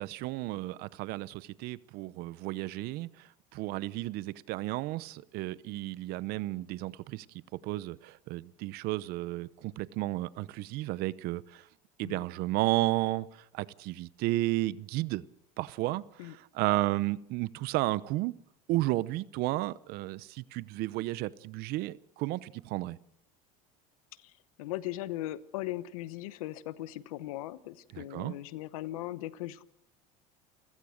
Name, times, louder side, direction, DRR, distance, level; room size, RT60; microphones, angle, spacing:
voice 1, 0.0-7.3 7.5-11.6 12.0-13.3 13.5-15.2 15.6-18.3 18.7-23.0 27.9-28.3, right 18 dB, 65° right, 0.8 m, -33 dB
voice 2, 24.6-29.6, left 15 dB, 90° left, 1.0 m, -38 dB
29.0 x 16.0 x 6.5 m
supercardioid pair, 105°, 18 cm